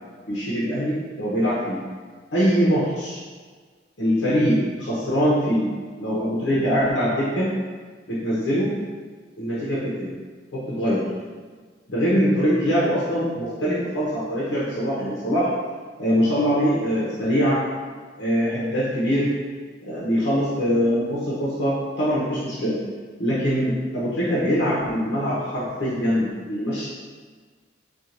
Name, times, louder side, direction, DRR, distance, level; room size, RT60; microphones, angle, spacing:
voice 1, 0.3-1.8 2.3-3.2 4.0-5.7 6.0-7.5 8.1-8.7 9.4-10.1 10.5-11.0 11.9-15.5 16.0-17.6 18.2-19.3 19.9-22.8 23.2-26.9, equal, 90° left, -9 dB, 0.8 m, -23 dB
4.3 x 2.4 x 2.5 m, 1.5 s
head